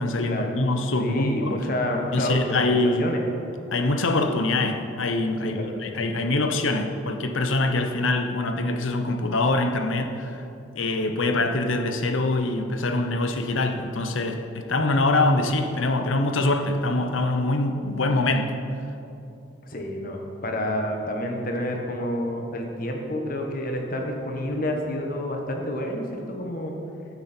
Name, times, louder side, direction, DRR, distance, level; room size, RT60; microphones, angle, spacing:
voice 1, 0.0-1.6 2.1-3.0 3.7-10.4 10.7-18.5, left 2 dB, 80° left, 6 dB, 0.9 m, -24 dB
voice 2, 1.0-3.2 5.4-5.7 19.6-26.7, left 1 dB, 45° left, 2 dB, 1.4 m, -29 dB
14.5 x 8.0 x 4.4 m, 2.8 s
head